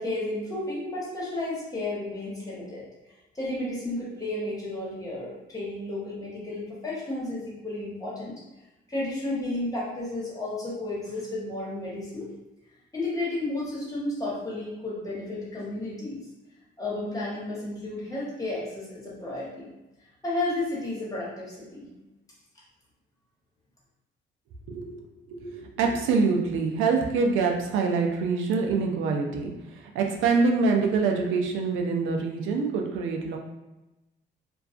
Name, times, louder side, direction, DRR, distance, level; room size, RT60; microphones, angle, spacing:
voice 1, 0.0-2.8 3.3-8.4 8.9-12.3 12.9-16.3 16.8-19.7 20.2-21.9, left 2 dB, 20° left, -7 dB, 1.0 m, -32 dB
voice 2, 24.7-33.4, right 4 dB, 90° right, 2 dB, 0.4 m, -25 dB
2.3 x 2.2 x 2.4 m, 1.0 s
cardioid pair, 90°, 20 cm